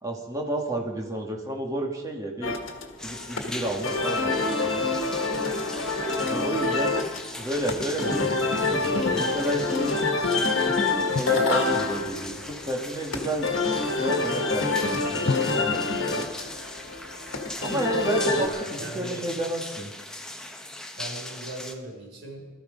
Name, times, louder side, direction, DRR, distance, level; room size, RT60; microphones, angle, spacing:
voice 1, 0.0-2.6 3.0-4.9 6.3-7.0 7.4-10.1 11.2-13.5 14.0-16.3 17.6-19.9, right 1 dB, 15° right, 0 dB, 2.0 m, -31 dB
sound 1, 2.4-18.5, left 3 dB, 70° left, 1.6 m, -27 dB
sound 2, 3.0-21.7, left 1 dB, 5° left, 0.9 m, -40 dB
Drum, 11.1-12.7 15.3-17.4, left 3 dB, 50° left, 0.4 m, -35 dB
voice 2, 18.4-19.2 20.9-22.5, right 1 dB, 60° right, -3 dB, 4.6 m, -39 dB
18.0 x 13.5 x 5.2 m, 1.3 s
head